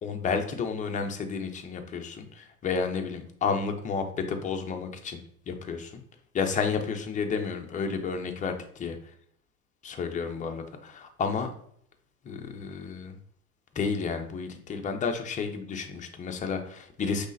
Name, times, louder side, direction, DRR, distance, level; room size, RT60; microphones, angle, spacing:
voice 1, 0.0-5.2 5.5-6.0 6.3-9.0 9.8-11.5 12.2-13.2 13.8-17.3, left 5 dB, 20° left, 5 dB, 0.5 m, -31 dB
5.3 x 3.3 x 2.6 m, 0.66 s
hypercardioid pair, 95°, 43 cm